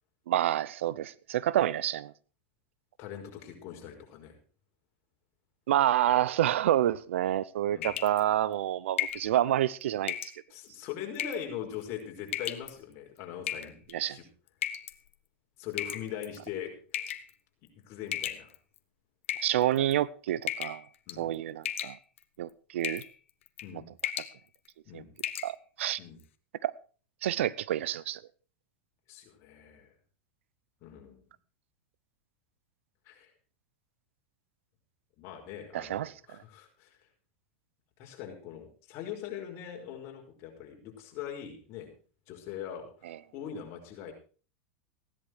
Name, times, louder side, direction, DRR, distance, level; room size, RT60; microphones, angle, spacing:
voice 1, 0.3-2.1 5.7-10.2 13.9-14.2 19.4-20.8 21.2-22.0 22.4-23.0 24.9-25.0 25.4-26.0 26.6-26.7 27.2-28.2 35.7-36.1 43.1-43.2, right 12 dB, 85° right, 0.8 m, -28 dB
voice 2, 3.0-4.4 7.7-8.0 10.5-14.2 15.6-17.1 17.8-18.5 21.1-21.3 23.6-23.9 24.9-25.1 26.0-26.2 29.1-29.9 30.8-31.3 33.1-33.3 35.2-37.0 38.0-41.9 42.3-44.1, left 9 dB, 45° left, 5.4 m, -42 dB
sound 1, 7.8-8.2 9.0-9.3 10.1-10.4 11.1-11.5 12.3-12.7 13.5-13.9 14.6-14.9 15.8-16.4 16.9-17.3 18.1-18.8 19.2-19.9 20.5-20.8 21.1-21.3 21.6-22.2 22.8-23.1 23.5-23.7 24.0-24.3 24.7-24.8 25.2-25.5, left 11 dB, 85° left, 1.4 m, -34 dB
16.5 x 10.5 x 4.8 m
supercardioid pair, 130°, 7 cm